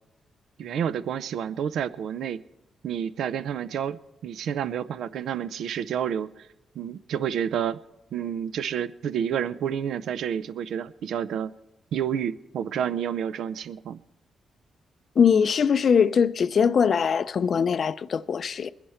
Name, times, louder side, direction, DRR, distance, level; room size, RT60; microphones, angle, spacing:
voice 1, 0.6-2.4 2.8-6.5 6.8-7.8 8.1-11.5 11.9-14.0, right 8 dB, 80° right, 0.5 m, -29 dB
voice 2, 15.2-18.7, left 6 dB, 55° left, 0.4 m, -21 dB
21.5 x 10.5 x 4.4 m
cardioid pair, 95°, 0 cm